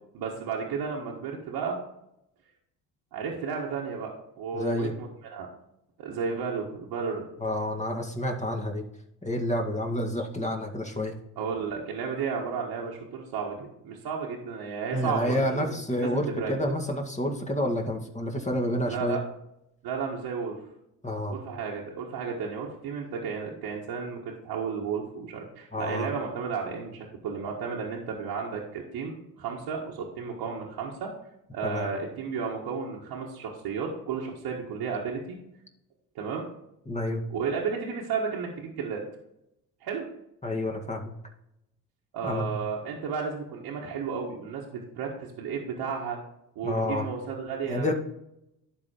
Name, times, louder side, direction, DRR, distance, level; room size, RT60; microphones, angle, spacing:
voice 1, 0.1-1.8 3.1-5.5 6.0-7.2 11.4-16.5 18.9-19.2 19.8-20.6 21.3-31.1 31.5-35.4 36.1-36.5 37.3-39.0 39.8-40.1 42.1-46.2 46.5-47.8, right 6 dB, 80° right, -4 dB, 1.6 m, -33 dB
voice 2, 4.5-4.9 7.4-8.8 9.2-11.1 14.9-19.2 21.0-21.4 25.7-26.1 31.6-31.9 36.9-37.2 40.4-41.1 42.2-42.5 46.6-47.1 47.6-47.9, left 1 dB, 20° left, 2 dB, 2.0 m, -29 dB
11.5 x 4.1 x 4.4 m, 0.82 s
supercardioid pair, 65°, 38 cm